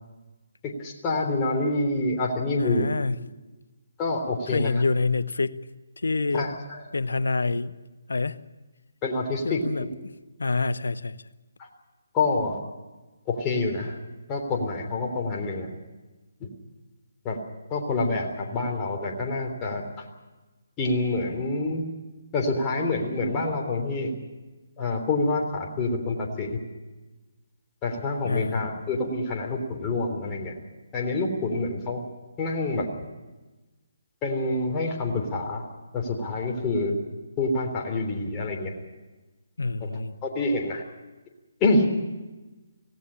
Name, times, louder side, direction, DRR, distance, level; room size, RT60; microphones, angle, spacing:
voice 1, 0.6-2.9 4.0-4.7 6.3-6.8 9.0-9.6 11.6-11.7 12.1-12.6 13.3-14.0 14.3-15.7 16.4-16.5 17.2-17.4 17.7-20.1 20.8-21.8 22.3-24.1 24.8-26.6 27.8-30.5 30.9-32.0 32.4-32.9 34.2-35.6 35.9-37.0 37.4-38.7 39.8-39.9 40.2-40.8 41.6-41.9, left 2 dB, 20° left, 1 dB, 3.5 m, -27 dB
voice 2, 2.6-3.2 4.5-5.6 6.0-6.4 6.9-7.7 8.1-8.4 9.4-9.9 10.4-11.2 28.2-28.6 39.6-40.1, left 3 dB, 75° left, 17 dB, 0.8 m, -26 dB
18.0 x 17.0 x 9.9 m, 1.2 s
figure-of-eight pair, 145°, 0 cm